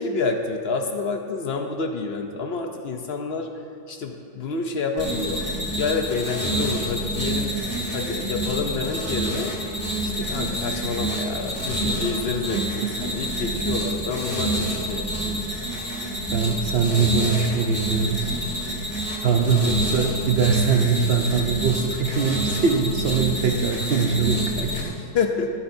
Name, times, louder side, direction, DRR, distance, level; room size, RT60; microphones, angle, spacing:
voice 1, 0.0-3.5 3.9-5.5 5.8-7.6 7.9-9.6 10.0-15.4 19.4-19.8 24.7-25.5, left 4 dB, 65° left, 4 dB, 0.6 m, -28 dB
sound 1, 5.0-24.8, right 1 dB, 20° left, 1.8 m, -28 dB
voice 2, 16.3-18.4 19.2-24.9, right 5 dB, 70° right, 3 dB, 0.5 m, -22 dB
21.5 x 9.2 x 2.7 m, 2.5 s
omnidirectional pair, 1.9 m